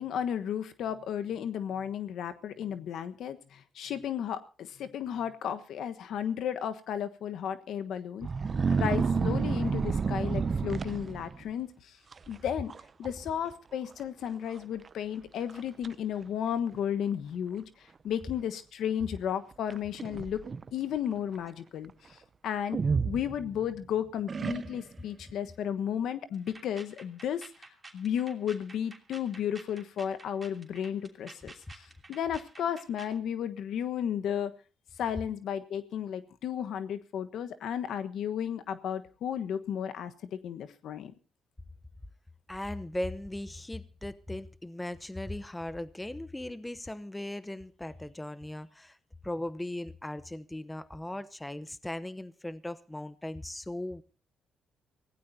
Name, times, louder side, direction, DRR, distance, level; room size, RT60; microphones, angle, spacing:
voice 1, 0.0-8.3 8.7-11.7 12.3-12.7 13.0-17.6 18.0-20.4 20.7-21.9 22.4-22.8 23.0-27.4 27.9-31.8 32.1-34.5 35.0-40.1 40.4-41.1, left 9 dB, 75° left, 1.3 m, -33 dB
sound 1, 8.2-11.5 12.1-12.4 12.7-13.1 13.4-13.5 14.3-14.4 14.9-15.0 15.5-15.9 16.7-16.8 19.7-20.7 22.7-23.8 24.3-25.0, right 5 dB, 40° right, 0.7 m, -30 dB
sound 2, 26.3-33.2, right 3 dB, 20° right, 3.0 m, -51 dB
voice 2, 42.5-49.0 49.2-54.0, left 1 dB, 10° left, 0.9 m, -38 dB
24.5 x 16.5 x 2.8 m
cardioid pair, 90°, 0 cm